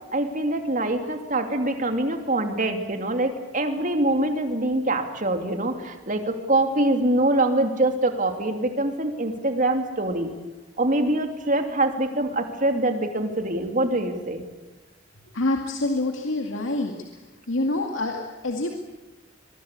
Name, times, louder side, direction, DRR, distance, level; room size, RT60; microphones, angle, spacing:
voice 1, 0.0-10.3 10.8-14.4, right 1 dB, 40° right, 5 dB, 2.8 m, -24 dB
voice 2, 15.3-16.9 17.5-18.7, left 2 dB, 90° left, 2 dB, 2.3 m, -26 dB
24.0 x 22.0 x 8.4 m, 1.1 s
head